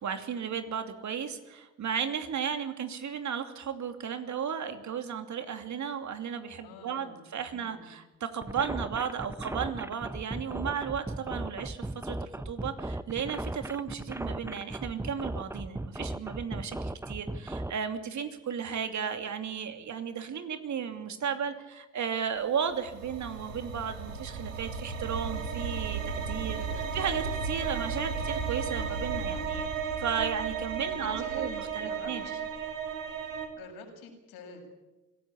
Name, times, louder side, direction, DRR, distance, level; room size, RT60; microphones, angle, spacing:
voice 1, 0.0-26.6 26.9-29.7 30.0-32.4, right 7 dB, 45° right, 7 dB, 2.9 m, -34 dB
voice 2, 6.6-7.3 7.6-7.9 26.4-26.7 27.0-27.2 30.9-32.5 33.5-34.7, left 4 dB, 65° left, 3 dB, 6.9 m, -48 dB
sound 1, 8.4-17.7, right 2 dB, 5° right, 1.1 m, -36 dB
sound 2, 22.7-33.5, right 6 dB, 90° right, 2.4 m, -34 dB
25.0 x 17.5 x 8.7 m, 1.1 s
hypercardioid pair, 55°, 39 cm